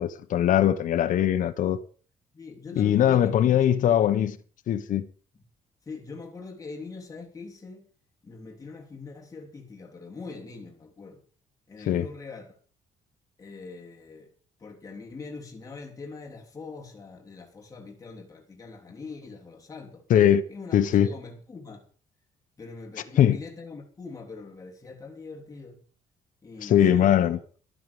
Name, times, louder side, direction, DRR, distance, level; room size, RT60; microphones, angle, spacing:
voice 1, 0.0-1.8 2.8-4.4 4.7-5.1 11.9-12.1 20.1-20.4 20.7-21.1 23.2-23.4 26.6-27.4, left 10 dB, 65° left, 1.1 m, -21 dB
voice 2, 2.3-3.6 5.8-7.9 8.2-11.2 11.7-12.5 13.4-14.3 14.6-20.0 20.5-21.8 22.6-25.8 26.4-27.3, left 4 dB, 25° left, 3.3 m, -42 dB
12.5 x 9.6 x 7.0 m
cardioid pair, 110°, 14 cm